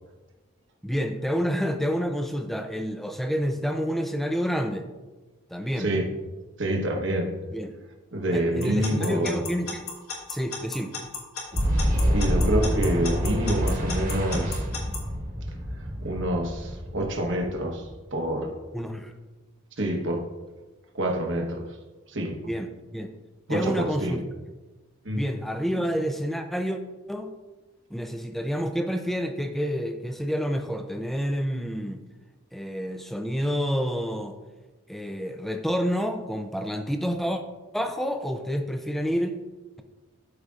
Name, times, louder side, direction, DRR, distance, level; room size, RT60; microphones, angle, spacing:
voice 1, 0.8-4.9 5.5-5.9 7.5-7.7 8.3-9.8 10.3-10.9 18.7-19.1 22.5-23.1 23.5-24.2 25.1-26.8 27.1-27.3 27.9-32.0 32.5-34.4 34.9-37.4 37.7-39.4, equal, ahead, 5 dB, 0.4 m, -28 dB
voice 2, 6.6-7.3 8.1-9.4 12.1-14.7 16.0-18.5 19.8-20.2 20.9-21.6 22.1-22.3 23.5-24.2 25.0-25.2, right 1 dB, 55° right, 2 dB, 1.1 m, -27 dB
Alarm / Clock, 8.6-15.0, left 5 dB, 85° left, 1.5 m, -34 dB
Boom, 11.5-18.1, equal, 40° right, 1.3 m, -27 dB
12.5 x 5.0 x 2.4 m, 1.2 s
head